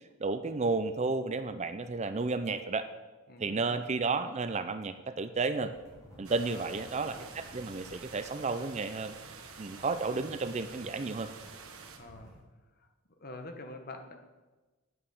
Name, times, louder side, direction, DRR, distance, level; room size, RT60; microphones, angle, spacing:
voice 1, 0.2-2.9 3.4-5.7 6.2-9.1 9.6-11.3, right 3 dB, 30° right, 10 dB, 0.5 m, -32 dB
voice 2, 3.3-3.8 6.4-6.7 12.0-12.3 12.8-12.9 13.2-14.2, left 2 dB, 40° left, 6 dB, 1.2 m, -46 dB
sound 1, 5.6-12.4, equal, 15° left, 4.4 m, -56 dB
sound 2, 6.2-12.0, right 5 dB, 70° right, 1.3 m, -49 dB
9.1 x 8.7 x 6.5 m, 1.2 s
head